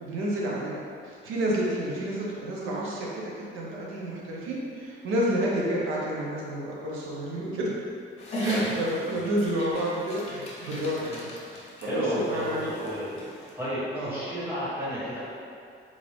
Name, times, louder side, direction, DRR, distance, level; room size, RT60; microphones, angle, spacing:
voice 1, 0.0-7.7 8.4-12.8 13.9-14.3, right 1 dB, 85° right, -4 dB, 0.7 m, -30 dB
Dog, 8.2-13.5, equal, 30° left, 0.7 m, -39 dB
voice 2, 11.8-13.2 13.5-15.2, equal, 10° right, -11 dB, 1.2 m, -32 dB
3.7 x 2.5 x 3.4 m, 2.4 s
cardioid pair, 160°, 21 cm